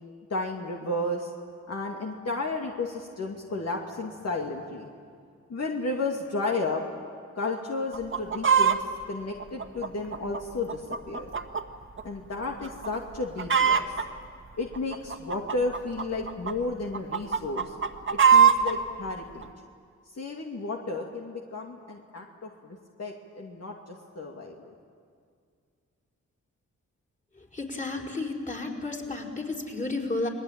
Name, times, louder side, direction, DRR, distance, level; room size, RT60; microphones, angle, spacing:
voice 1, 0.3-1.3 1.7-4.9 5.5-6.8 7.3-8.8 9.1-10.8 11.1-11.3 12.0-13.9 14.6-17.7 18.3-19.5 20.2-24.7, left 2 dB, 55° left, 0 dB, 2.5 m, -33 dB
Chicken rooster, 7.9-8.8 9.4-11.6 12.0-12.1 12.6-12.9 13.1-14.0 14.7-16.5 16.9-18.7 19.4-19.5, right 7 dB, 40° right, 1.7 m, -22 dB
voice 2, 27.5-30.3, left 2 dB, 25° left, 0 dB, 4.9 m, -32 dB
29.5 x 20.5 x 9.0 m, 2.2 s
cardioid pair, 75°, 30 cm